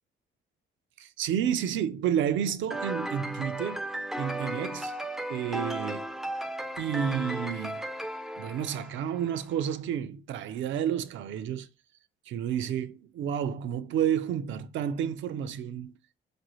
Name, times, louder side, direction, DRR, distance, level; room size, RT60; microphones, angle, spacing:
voice 1, 1.0-3.9 4.2-4.9 5.3-6.2 6.8-7.8 8.4-11.7 12.3-16.0, right 9 dB, 75° right, 0.4 m, -30 dB
sound 1, 2.7-9.3, right 1 dB, ahead, 0.3 m, -35 dB
4.6 x 2.6 x 3.0 m
cardioid pair, 90°, 20 cm